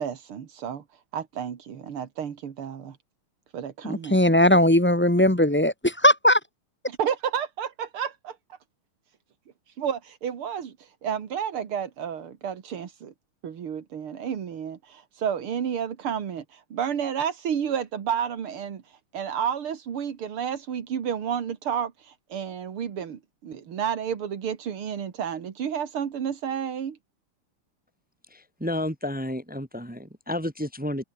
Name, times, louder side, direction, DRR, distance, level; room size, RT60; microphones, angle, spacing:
voice 1, 0.0-3.0 3.5-4.2 6.9-8.6 9.7-13.1 13.4-27.0, right 8 dB, 85° right, 2.8 m, -31 dB
voice 2, 3.8-6.4, left 1 dB, 5° left, 1.1 m, -19 dB
voice 3, 28.3-31.0, left 1 dB, 10° right, 0.5 m, -31 dB
omnidirectional pair, 2.4 m